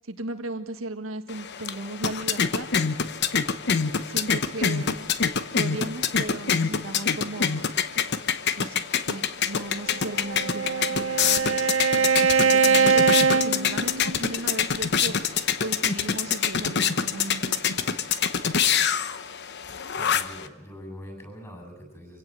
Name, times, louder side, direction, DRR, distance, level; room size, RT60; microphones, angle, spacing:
voice 1, 0.0-2.7 4.1-5.1 5.5-7.7 8.6-18.0, right 2 dB, 90° right, 6 dB, 1.6 m, -36 dB
sound 1, 1.3-20.5, left 7 dB, 60° left, 1.0 m, -26 dB
Bowed string instrument, 9.9-14.4, right 5 dB, 70° right, 0.7 m, -22 dB
voice 2, 19.9-22.2, equal, 15° left, 4 dB, 7.8 m, -43 dB
25.5 x 17.0 x 7.7 m, 1.1 s
head